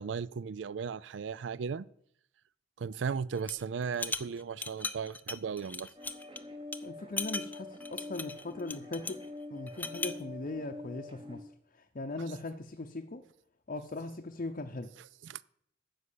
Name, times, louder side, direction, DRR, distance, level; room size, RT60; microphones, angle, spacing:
voice 1, 0.0-1.9 2.8-5.9 15.2-15.4, right 6 dB, 75° right, 0.4 m, -36 dB
sound 1, 3.4-3.6 3.9-6.4 6.7-6.8 7.2-9.3 9.7-10.2, left 3 dB, 10° left, 0.4 m, -38 dB
sound 2, 6.0-11.4, left 2 dB, 30° right, 1.3 m, -45 dB
voice 2, 6.8-9.2 9.5-11.4 11.9-13.2 13.7-14.9, left 2 dB, 45° left, 0.7 m, -39 dB
9.7 x 6.4 x 8.4 m
head